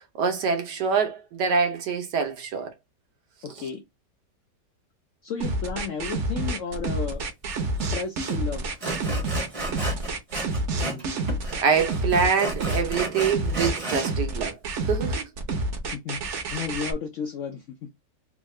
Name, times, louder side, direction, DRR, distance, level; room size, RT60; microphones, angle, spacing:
voice 1, 0.0-2.7 10.7-11.2 11.6-14.6 14.8-15.2, right 5 dB, 80° right, 1.4 m, -25 dB
voice 2, 3.4-3.8 5.2-7.2 7.9-8.8 15.9-17.9, left 6 dB, 75° left, 0.7 m, -33 dB
sound 1, 5.4-16.9, right 2 dB, 55° right, 1.0 m, -28 dB
Sawing, 7.8-7.9 8.2-8.4 8.8-11.0 11.3-14.1, right 2 dB, 25° right, 0.7 m, -33 dB
3.5 x 2.3 x 3.1 m
omnidirectional pair, 1.8 m